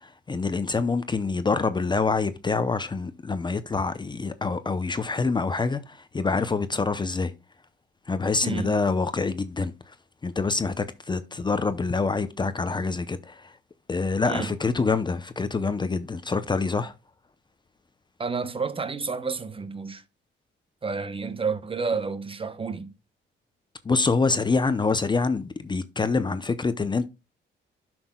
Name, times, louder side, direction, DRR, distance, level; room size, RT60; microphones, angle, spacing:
voice 1, 0.3-7.3 8.1-9.7 10.2-13.4 13.9-16.9 23.9-27.1, left 4 dB, 25° left, 0.6 m, -26 dB
voice 2, 8.4-8.8 14.3-14.5 18.2-20.0 20.8-22.9, right 4 dB, 25° right, 0.8 m, -30 dB
11.0 x 6.1 x 2.2 m
cardioid pair, 90°, 20 cm